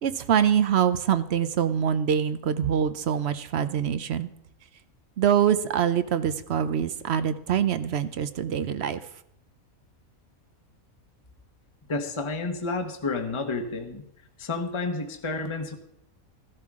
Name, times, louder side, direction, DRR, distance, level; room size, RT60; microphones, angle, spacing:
voice 1, 0.0-4.3 5.2-9.0, right 8 dB, 60° right, 12 dB, 0.8 m, -24 dB
voice 2, 11.9-14.0 14.4-15.7, left 3 dB, 25° left, 4 dB, 1.0 m, -30 dB
15.0 x 12.0 x 3.6 m, 0.77 s
omnidirectional pair, 1.5 m